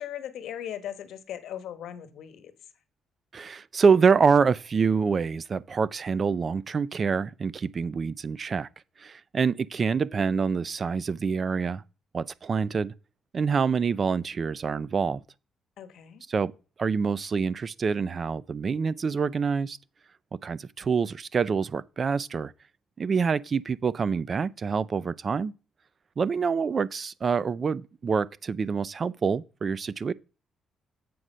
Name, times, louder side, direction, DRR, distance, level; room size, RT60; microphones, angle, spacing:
voice 1, 0.0-2.5 15.8-16.2, left 10 dB, 75° left, 1.2 m, -38 dB
voice 2, 3.3-8.7 9.0-11.8 12.1-12.9 13.3-15.2 16.3-16.5 16.8-19.8 20.4-22.5 23.0-25.5 26.2-30.1, right 5 dB, 40° right, 0.4 m, -26 dB
7.7 x 4.9 x 5.5 m
cardioid pair, 90°, 0 cm